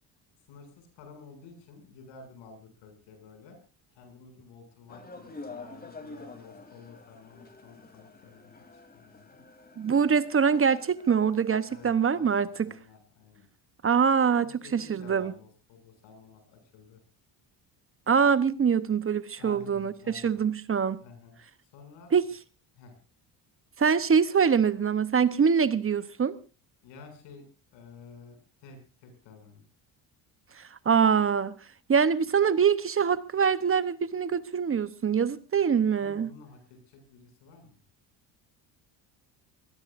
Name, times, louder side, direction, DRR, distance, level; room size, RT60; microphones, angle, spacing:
voice 1, 0.5-3.6 3.9-9.5 11.7-12.3 12.6-13.5 14.4-17.0 19.4-20.5 21.0-21.3 21.7-22.1 22.8-22.9 26.8-27.5 27.7-29.6 36.0-37.8, left 4 dB, 80° left, 7.3 m, -51 dB
sound 1, 4.9-11.9, left 3 dB, 20° left, 3.3 m, -48 dB
voice 2, 9.8-12.7 13.8-15.3 18.1-19.9 20.2-21.0 22.1-22.3 23.8-26.3 30.9-31.5 31.9-36.3, right 6 dB, 30° right, 1.0 m, -24 dB
24.5 x 18.5 x 2.6 m
cardioid pair, 90°, 43 cm